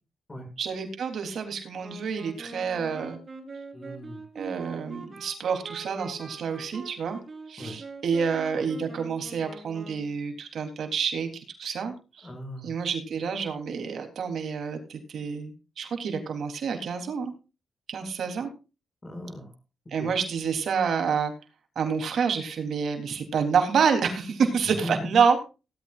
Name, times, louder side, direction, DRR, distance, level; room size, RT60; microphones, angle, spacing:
voice 1, 0.6-3.2 4.4-7.2 7.5-11.3 11.6-12.3 12.6-17.3 17.9-18.5 19.9-21.3 21.8-25.4, right 6 dB, 70° right, 5 dB, 3.6 m, -28 dB
Wind instrument woodwind instrument, 1.8-10.2, right 3 dB, 35° right, 4.7 m, -44 dB
voice 2, 3.7-4.2 7.6-7.7 12.2-12.7 19.0-19.5 19.9-20.1 24.8-25.1, left 1 dB, 25° left, 5 dB, 7.2 m, -38 dB
17.5 x 13.5 x 2.6 m, 0.31 s
cardioid pair, 100°, 0 cm